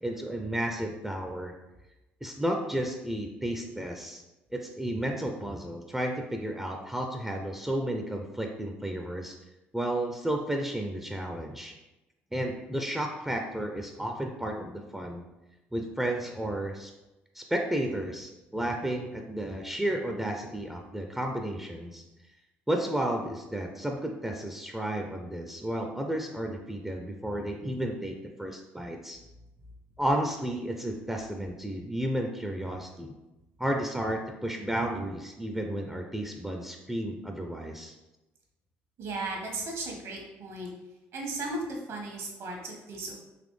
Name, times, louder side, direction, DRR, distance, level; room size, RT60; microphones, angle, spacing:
voice 1, 0.0-1.5 2.2-4.2 4.5-9.3 9.7-11.7 12.3-15.2 15.7-16.9 17.3-22.0 22.7-29.2 30.0-33.1 33.6-37.9, right 1 dB, 5° right, 2 dB, 0.5 m, -32 dB
voice 2, 39.0-40.7 41.1-43.2, right 2 dB, 65° right, -1 dB, 1.3 m, -36 dB
4.1 x 3.0 x 3.2 m, 1.0 s
hypercardioid pair, 65°, 5 cm